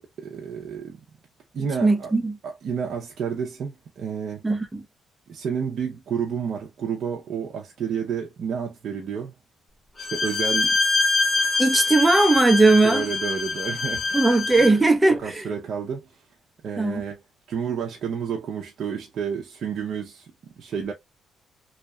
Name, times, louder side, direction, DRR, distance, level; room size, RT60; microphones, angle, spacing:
voice 1, 0.2-1.0 1.5-2.1 2.4-4.4 5.3-9.3 10.0-10.8 12.8-14.2 14.6-14.8 15.2-16.2 16.6-17.2 17.5-20.9, right 7 dB, 65° right, 0.5 m, -30 dB
voice 2, 1.8-2.4 4.4-4.8 11.6-13.1 14.1-15.5 16.8-17.0, right 2 dB, 15° right, 0.6 m, -19 dB
Bowed string instrument, 10.0-14.8, left 3 dB, 35° left, 0.8 m, -24 dB
2.7 x 2.2 x 2.2 m
cardioid pair, 90°, 0 cm